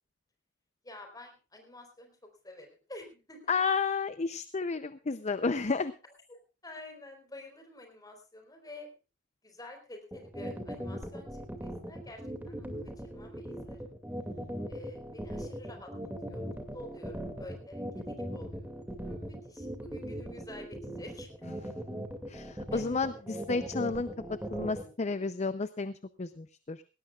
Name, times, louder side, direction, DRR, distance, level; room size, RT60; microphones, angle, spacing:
voice 1, 0.8-2.1 2.4-3.5 6.3-8.9 9.4-12.7 13.0-13.8 14.7-15.9 16.3-18.7 19.0-21.4 22.7-22.8, left 2 dB, 20° left, 4 dB, 4.1 m, -49 dB
voice 2, 3.5-5.9 22.3-25.9 26.2-26.8, left 4 dB, 35° left, 12 dB, 0.6 m, -32 dB
sound 1, 10.1-24.8, equal, 10° right, 2.3 m, -39 dB
19.0 x 17.5 x 2.4 m, 0.32 s
head